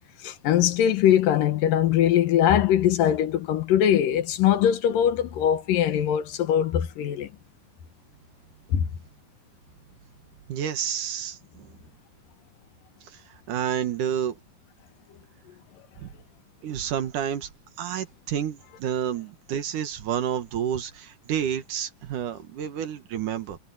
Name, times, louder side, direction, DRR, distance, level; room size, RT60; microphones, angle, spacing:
voice 1, 0.2-7.3 8.7-8.8, left 10 dB, 75° left, 2.9 m, -21 dB
voice 2, 10.5-11.8 13.1-13.2 13.5-14.4 16.0-16.1 16.6-17.5 17.8-23.6, right 9 dB, 65° right, 2.9 m, -29 dB
omnidirectional pair, 4.0 m